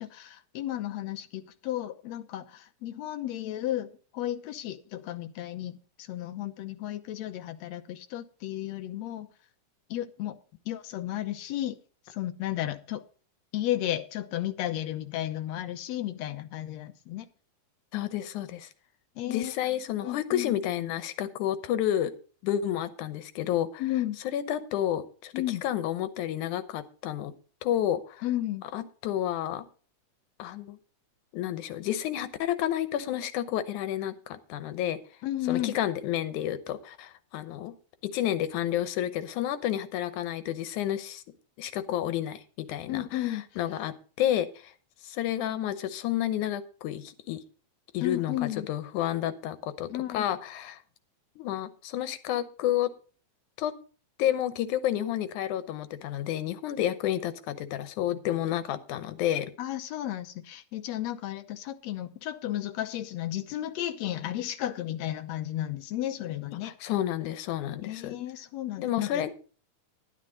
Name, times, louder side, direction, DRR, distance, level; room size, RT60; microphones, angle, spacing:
voice 1, 0.0-9.3 9.9-10.4 10.7-11.8 12.1-13.0 13.5-17.3 19.2-19.5 20.0-20.6 23.8-24.2 25.3-25.6 28.2-28.6 35.2-35.8 42.9-43.4 48.0-48.7 49.9-50.3 59.6-66.7 67.8-69.3, left 13 dB, 70° left, 9 dB, 2.0 m, -33 dB
voice 2, 17.9-18.7 19.3-22.1 22.4-23.8 24.2-27.3 27.6-28.3 28.7-29.7 30.4-30.8 31.3-35.0 35.5-37.7 38.0-41.2 41.6-44.7 45.0-47.4 47.9-50.8 51.4-52.9 53.6-53.7 54.2-59.5 66.6-68.2 68.8-69.3, left 11 dB, 90° left, 12 dB, 2.4 m, -30 dB
11.5 x 11.0 x 3.9 m, 0.39 s
omnidirectional pair, 3.4 m